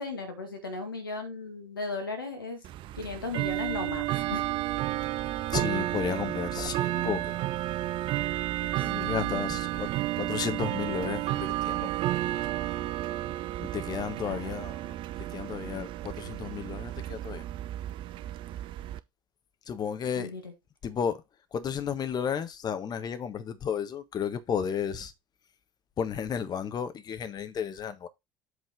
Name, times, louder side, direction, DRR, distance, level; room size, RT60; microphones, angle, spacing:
voice 1, 0.0-2.6 3.0-4.5 8.8-9.4 14.2-14.5 20.2-20.5, left 3 dB, 85° left, 2.1 m, -36 dB
Bell / Tick-tock, 2.6-19.0, right 15 dB, 50° right, 0.5 m, -32 dB
voice 2, 5.5-7.4 8.8-9.9 10.2-11.9 13.6-17.4 19.7-20.3 20.8-21.2 21.5-25.1 26.0-28.1, left 7 dB, 35° left, 1.4 m, -33 dB
8.4 x 4.0 x 5.0 m
figure-of-eight pair, 65°, 11 cm